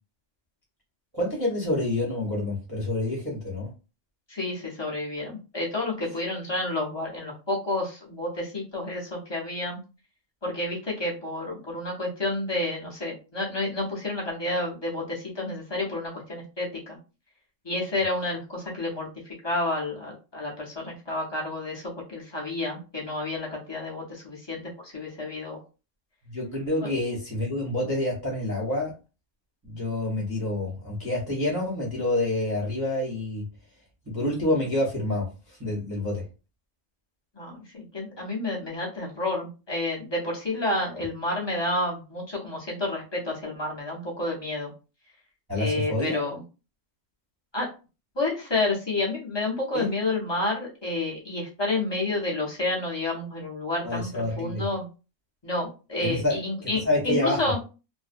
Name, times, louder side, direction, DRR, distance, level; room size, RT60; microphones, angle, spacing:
voice 1, 1.1-3.7 26.2-28.9 29.6-33.5 34.1-36.2 45.5-46.2 49.7-49.9 53.8-54.6 56.0-57.5, left 1 dB, 25° right, -5 dB, 0.5 m, -28 dB
voice 2, 4.3-9.8 10.4-17.0 17.6-25.6 26.8-26.9 37.3-44.7 45.6-46.4 47.5-47.7 48.2-54.9 55.4-57.6, left 2 dB, 40° left, -4 dB, 0.3 m, -30 dB
2.5 x 2.1 x 2.4 m, 0.32 s
omnidirectional pair, 1.6 m